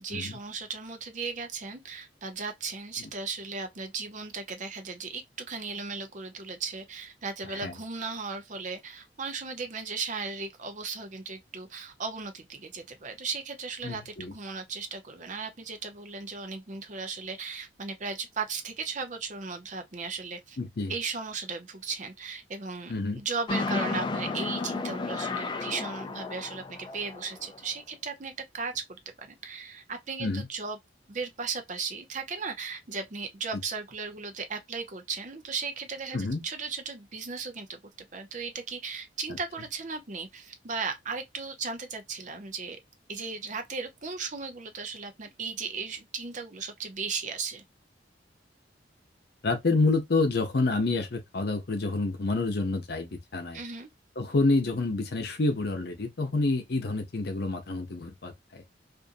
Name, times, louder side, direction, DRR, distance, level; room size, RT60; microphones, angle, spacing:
voice 1, 0.0-20.6 20.9-30.8 31.1-37.8 38.1-42.8 43.1-47.6 53.5-53.9, right 4 dB, 45° right, 0.6 m, -36 dB
voice 2, 13.8-14.3 20.6-20.9 22.9-23.2 30.2-30.5 36.1-36.4 49.4-53.6 54.2-58.6, left 3 dB, 60° left, 0.7 m, -28 dB
sound 1, 23.5-27.7, left 3 dB, 25° left, 0.3 m, -33 dB
2.6 x 2.5 x 2.5 m
head